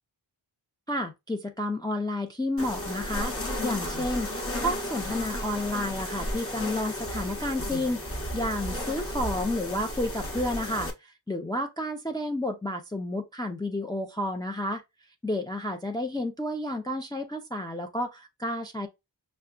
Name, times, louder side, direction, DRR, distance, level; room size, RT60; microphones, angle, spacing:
voice 1, 0.9-3.3 3.6-4.3 4.6-8.0 8.3-14.8 15.2-18.9, left 1 dB, 10° left, 0.4 m, -31 dB
sound 1, 2.6-10.9, left 1 dB, 30° left, 1.0 m, -33 dB
5.5 x 2.1 x 2.3 m
wide cardioid pair, 55°, 46 cm